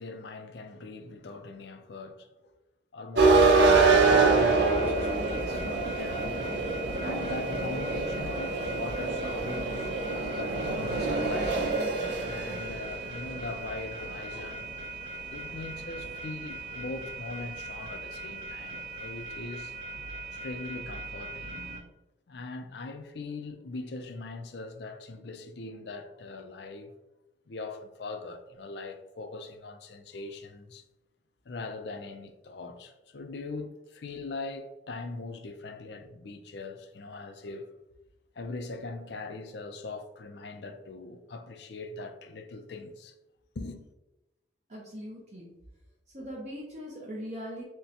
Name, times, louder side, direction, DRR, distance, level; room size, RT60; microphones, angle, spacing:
voice 1, 0.0-2.5 2.9-6.4 7.0-11.6 12.2-14.7 15.3-19.7 20.3-21.7 22.3-26.9 27.5-30.8 31.5-37.7 38.4-43.1 43.6-43.8, left 3 dB, 65° left, 0.4 m, -41 dB
sound 1, 3.1-21.8, right 3 dB, 75° right, 0.7 m, -28 dB
voice 2, 44.7-45.5 46.1-47.6, equal, 35° right, 0.7 m, -40 dB
6.4 x 2.2 x 2.8 m
head